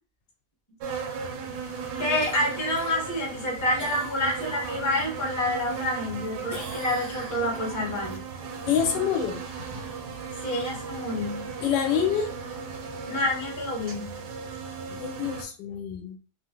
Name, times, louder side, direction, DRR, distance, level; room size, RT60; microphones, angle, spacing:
sound 1, 0.8-15.4, right 5 dB, 70° right, 1.2 m, -36 dB
voice 1, 2.0-8.2 10.4-11.5 13.1-14.2, left 1 dB, 15° left, -2 dB, 0.6 m, -28 dB
Cough, 2.2-5.2 5.6-6.2 6.5-8.2 12.6-12.7, right 2 dB, 40° right, 0.7 m, -43 dB
voice 2, 8.6-9.4 11.6-12.3 15.0-16.2, left 8 dB, 90° left, 5 dB, 1.3 m, -26 dB
3.1 x 2.4 x 2.8 m, 0.35 s
omnidirectional pair, 1.9 m